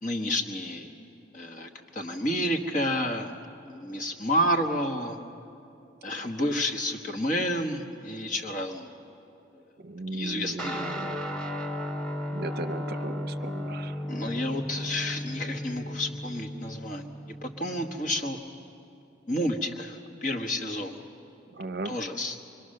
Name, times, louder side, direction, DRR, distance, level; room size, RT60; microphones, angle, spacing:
voice 1, 0.0-0.9 1.3-3.3 3.6-5.2 6.0-8.9 10.1-10.9 14.0-17.0 17.4-18.4 19.3-21.0 21.8-22.4, equal, 40° left, 4 dB, 1.3 m, -30 dB
voice 2, 9.8-11.2 12.3-14.0 21.5-22.0, right 2 dB, 50° right, 10 dB, 0.7 m, -36 dB
Guitar, 10.6-18.3, equal, 5° left, 1.5 m, -35 dB
25.0 x 23.5 x 6.5 m, 2.7 s
head